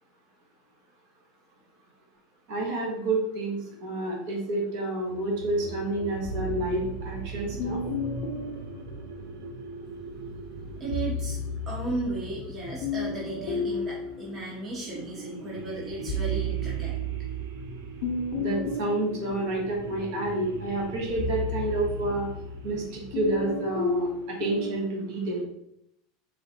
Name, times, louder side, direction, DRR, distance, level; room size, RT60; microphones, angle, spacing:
voice 1, 2.5-7.8 18.4-22.3 22.6-25.4, right 2 dB, 60° right, -1 dB, 1.4 m, -29 dB
sound 1, 5.1-14.2 14.9-23.6, right 3 dB, 80° right, 0.5 m, -42 dB
sound 2, 6.2-9.7 10.7-15.1 15.6-24.9, left 1 dB, 65° left, 0.6 m, -33 dB
voice 2, 10.8-11.4 11.7-17.0, right 2 dB, 25° right, -5 dB, 0.9 m, -35 dB
3.7 x 3.4 x 2.8 m, 0.75 s
supercardioid pair, 160°, 0 cm